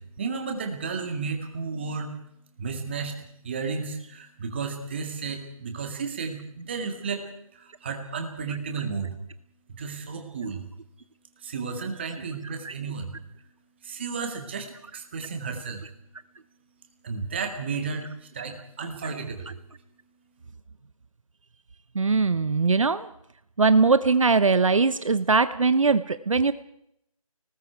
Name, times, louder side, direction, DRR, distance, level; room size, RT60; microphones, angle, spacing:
voice 1, 0.0-2.2 2.6-3.2 3.4-7.2 7.5-9.1 9.8-10.7 11.4-13.2 13.8-14.7 14.9-15.8 17.0-19.6, right 5 dB, 20° right, 5 dB, 2.0 m, -33 dB
voice 2, 21.9-23.1 23.6-26.5, right 4 dB, 65° right, 13 dB, 1.0 m, -21 dB
29.5 x 19.5 x 4.6 m, 0.74 s
figure-of-eight pair, 175°, 18 cm